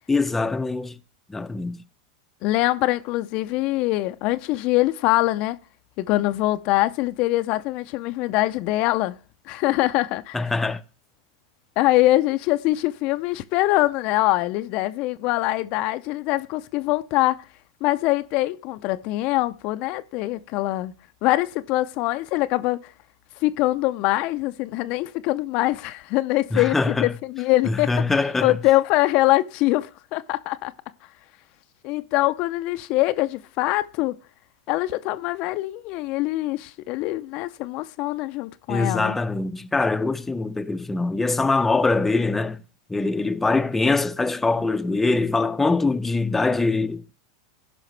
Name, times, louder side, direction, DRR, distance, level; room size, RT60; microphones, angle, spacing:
voice 1, 0.1-1.0 1.3-1.8 10.3-10.8 26.5-27.1 27.7-28.6 38.7-42.6 42.9-47.1, left 3 dB, 10° left, 0.6 m, -23 dB
voice 2, 2.4-5.6 6.0-9.2 9.5-10.4 11.8-17.4 17.8-20.9 21.2-22.9 23.4-27.9 28.4-30.7 31.8-34.2 34.7-39.2, left 17 dB, 50° left, 0.5 m, -23 dB
16.5 x 5.6 x 3.2 m
hypercardioid pair, 95°, 2 cm